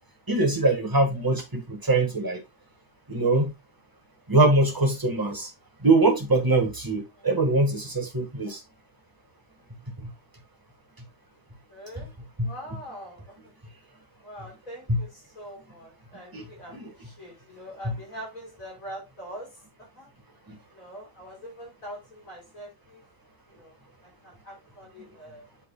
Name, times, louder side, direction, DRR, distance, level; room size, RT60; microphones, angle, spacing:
voice 1, 0.3-2.4 3.1-3.5 4.3-5.5 5.8-8.6 12.4-12.5 14.9-15.0 16.3-16.4 16.8-16.9, right 2 dB, 15° right, 3 dB, 1.6 m, -22 dB
voice 2, 11.7-12.1 12.4-13.5 14.2-20.1 20.7-23.0 23.5-23.8 24.0-25.5, equal, 75° left, -2 dB, 5.4 m, -43 dB
8.2 x 6.7 x 2.3 m, 0.24 s
omnidirectional pair, 1.4 m